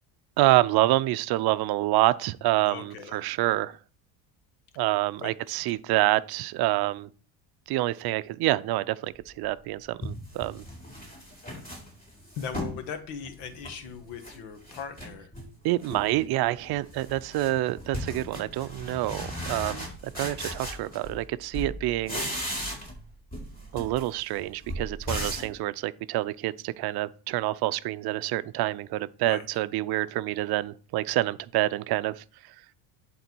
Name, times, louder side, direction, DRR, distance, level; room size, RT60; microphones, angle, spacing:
voice 1, 0.4-3.8 4.8-7.1 7.7-10.6 15.6-22.2 23.7-32.2, right 16 dB, 55° right, 0.5 m, -27 dB
voice 2, 2.7-3.2 5.2-5.3 12.4-15.3 29.2-29.4, left 6 dB, 75° left, 1.7 m, -39 dB
sound 1, 9.4-9.5 10.0-12.8 13.2-14.4 14.6-15.5 15.8-16.2 16.5-21.3 21.5-23.0 23.3-25.6, equal, 20° left, 4.3 m, -37 dB
11.0 x 3.9 x 4.5 m
cardioid pair, 110°, 47 cm